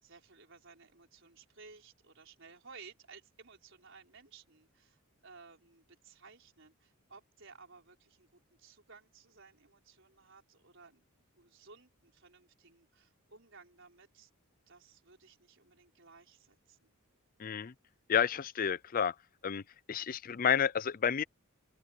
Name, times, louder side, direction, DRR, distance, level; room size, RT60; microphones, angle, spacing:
voice 1, 0.0-11.0 11.3-14.3 14.7-16.9, right 4 dB, 60° right, 4.9 m, -57 dB
voice 2, 17.4-17.7 18.1-19.1 19.4-19.6 19.9-21.2, left 7 dB, 40° left, 0.4 m, -30 dB
open air
head